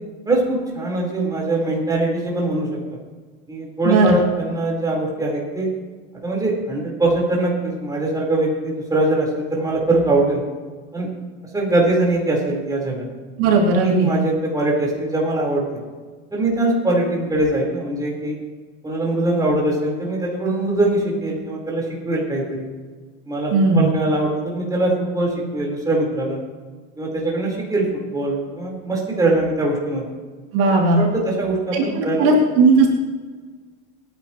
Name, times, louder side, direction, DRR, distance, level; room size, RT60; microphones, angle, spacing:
voice 1, 0.3-2.8 3.5-5.7 6.2-10.4 10.9-11.1 11.5-13.1 13.8-15.8 16.3-18.4 18.8-22.7 23.3-26.4 27.0-30.0 30.9-32.3, right 2 dB, 10° right, -3 dB, 4.4 m, -22 dB
voice 2, 3.8-4.2 13.4-14.2 23.5-23.9 30.5-31.0 31.7-32.9, right 3 dB, 60° right, -2 dB, 3.0 m, -16 dB
27.5 x 10.5 x 3.2 m, 1.4 s
supercardioid pair, 125°, 37 cm